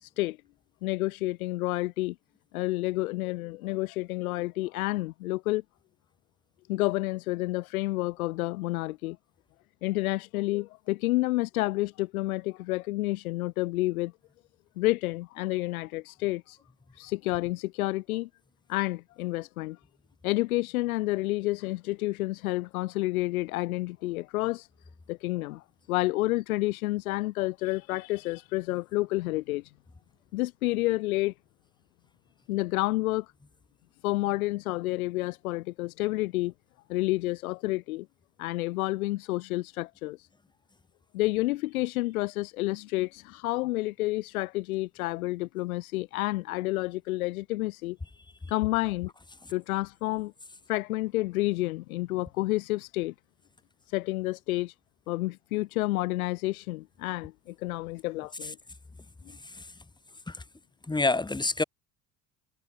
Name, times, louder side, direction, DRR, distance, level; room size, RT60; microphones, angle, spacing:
voice 1, 0.0-0.4 0.8-2.2 2.5-5.6 6.7-9.2 9.8-14.1 14.8-16.6 16.9-18.3 18.7-19.8 20.2-24.7 25.1-25.6 25.9-29.7 30.3-31.3 32.5-33.3 34.0-36.5 36.9-38.1 38.4-40.3 41.1-48.0 48.5-49.1 49.5-50.3 50.7-53.1 53.9-54.7 55.1-58.6, left 19 dB, 90° left, 0.6 m, -29 dB
voice 2, 59.3-59.7 60.3-60.4 60.8-61.6, left 3 dB, 10° left, 1.1 m, -29 dB
hypercardioid pair, 65°, 41 cm